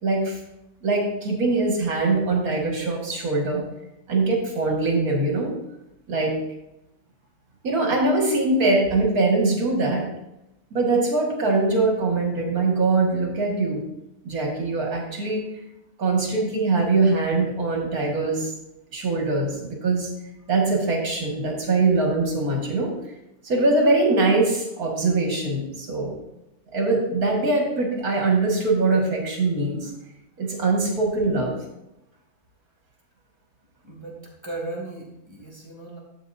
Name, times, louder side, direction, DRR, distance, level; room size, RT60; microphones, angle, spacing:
voice 1, 0.0-0.4 0.8-3.6 4.1-5.5 6.1-6.3 7.6-10.0 10.7-13.8 14.2-15.4 16.0-18.5 18.9-20.1 20.5-22.9 23.4-26.1 26.7-29.9 30.4-31.5, right 3 dB, 75° right, -1 dB, 2.5 m, -22 dB
voice 2, 33.8-34.2 34.4-36.0, right 2 dB, 15° right, -3 dB, 2.4 m, -36 dB
12.0 x 7.8 x 2.7 m, 0.89 s
omnidirectional pair, 1.6 m